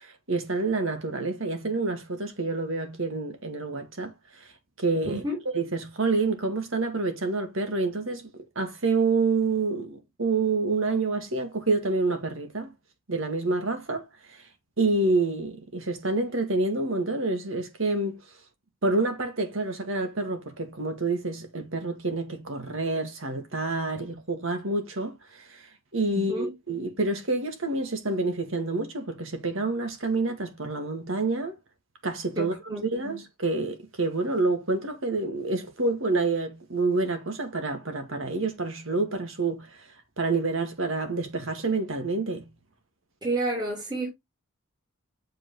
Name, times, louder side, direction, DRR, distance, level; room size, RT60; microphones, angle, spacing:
voice 1, 0.0-4.1 4.8-5.2 5.5-8.3 8.6-12.7 13.1-14.0 14.8-18.2 18.8-25.6 25.9-31.6 32.0-39.9 40.2-42.5, right 3 dB, 65° right, 2.0 m, -28 dB
voice 2, 5.0-5.4 26.1-26.5 32.4-33.2 43.2-44.1, right 1 dB, 20° right, 2.7 m, -31 dB
7.1 x 5.5 x 3.1 m
head